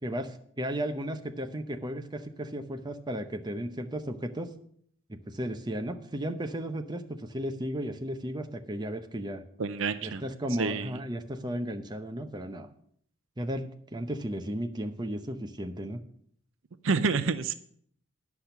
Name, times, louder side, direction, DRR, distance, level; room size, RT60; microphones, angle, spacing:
voice 1, 0.0-4.5 5.1-9.4 10.0-12.7 13.4-16.0, right 1 dB, 20° right, 5 dB, 0.7 m, -34 dB
voice 2, 9.6-10.2 10.6-11.0 16.8-17.5, right 4 dB, 70° right, 12 dB, 0.6 m, -28 dB
10.5 x 5.9 x 6.8 m, 0.63 s
head